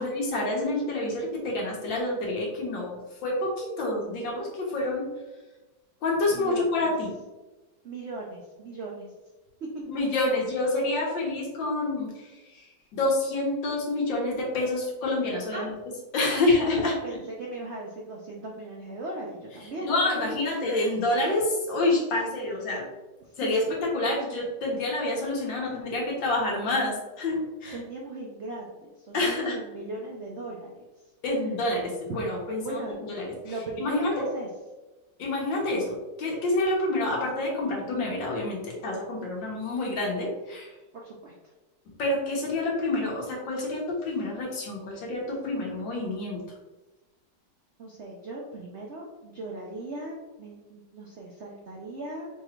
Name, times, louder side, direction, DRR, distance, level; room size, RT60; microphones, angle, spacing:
voice 1, 0.0-5.1 6.0-7.1 9.9-15.7 16.1-16.9 19.8-22.9 23.4-27.8 29.1-29.6 31.2-33.3 33.8-34.3 35.2-40.8 42.0-46.4, left 2 dB, 80° left, -2 dB, 1.8 m, -28 dB
voice 2, 6.3-6.9 7.8-9.1 9.6-9.9 15.5-15.7 16.3-20.5 23.3-23.8 27.6-30.8 32.1-32.2 32.6-32.9 33.4-34.5 40.9-41.5 47.8-52.3, right 2 dB, 70° right, -2 dB, 0.6 m, -38 dB
5.2 x 3.1 x 2.4 m, 1.1 s
omnidirectional pair, 2.0 m